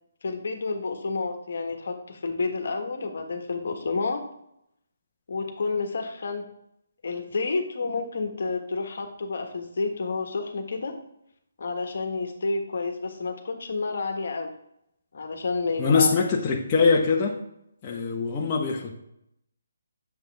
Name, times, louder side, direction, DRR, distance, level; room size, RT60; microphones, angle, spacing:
voice 1, 0.2-4.2 5.3-6.4 7.0-10.9 11.6-14.5 15.1-16.2, left 3 dB, 60° left, 4 dB, 1.4 m, -30 dB
voice 2, 15.8-17.4 17.8-18.9, left 5 dB, 25° left, -2 dB, 1.1 m, -22 dB
8.9 x 7.1 x 3.4 m, 0.78 s
figure-of-eight pair, 150°, 0 cm